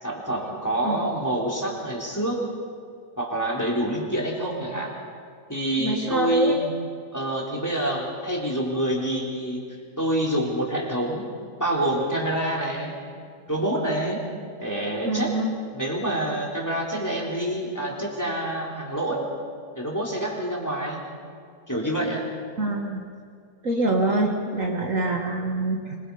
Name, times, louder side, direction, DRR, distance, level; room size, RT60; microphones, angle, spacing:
voice 1, 0.0-2.5 3.2-4.9 5.5-6.7 7.1-9.6 10.0-12.9 13.5-14.2 14.6-15.3 15.7-19.3 19.7-21.0 21.7-22.2, right 1 dB, 10° left, -3 dB, 3.7 m, -27 dB
voice 2, 5.8-6.6 15.0-15.5 22.6-23.0 23.6-26.0, right 2 dB, 50° right, 1 dB, 1.8 m, -25 dB
25.5 x 22.5 x 5.5 m, 2.3 s
omnidirectional pair, 1.8 m